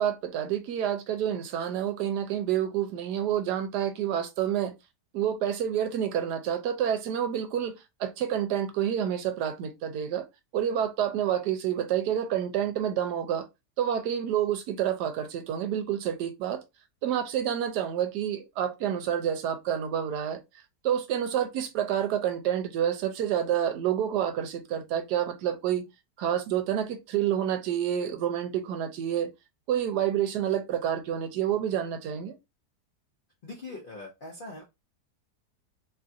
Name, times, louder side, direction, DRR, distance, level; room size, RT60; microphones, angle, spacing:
voice 1, 0.0-4.7 5.1-10.3 10.5-13.5 13.8-16.6 17.0-20.4 20.8-25.9 26.2-29.3 29.7-32.3, right 10 dB, 80° right, 1.1 m, -28 dB
voice 2, 33.4-34.6, left 2 dB, 60° left, 0.5 m, -41 dB
3.0 x 2.4 x 2.6 m
omnidirectional pair, 1.8 m